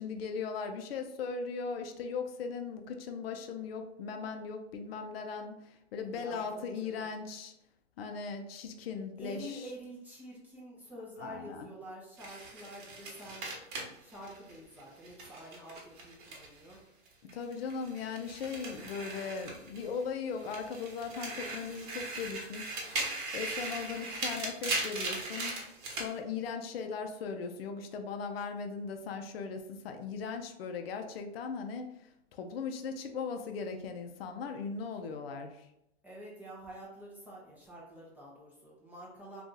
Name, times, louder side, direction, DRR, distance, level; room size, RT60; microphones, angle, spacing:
voice 1, 0.0-7.5 8.0-9.7 11.2-11.7 17.3-22.8 23.3-25.6 26.0-35.7, left 5 dB, 55° left, 6 dB, 0.5 m, -38 dB
voice 2, 6.0-7.1 9.2-13.5 14.0-16.8 35.1-35.2 36.0-39.4, equal, 5° right, -6 dB, 0.4 m, -48 dB
sound 1, 12.2-16.8 17.1-20.0 20.4-26.1, right 2 dB, 45° right, 1.1 m, -39 dB
2.6 x 2.4 x 3.8 m, 0.82 s
hypercardioid pair, 130°, 35 cm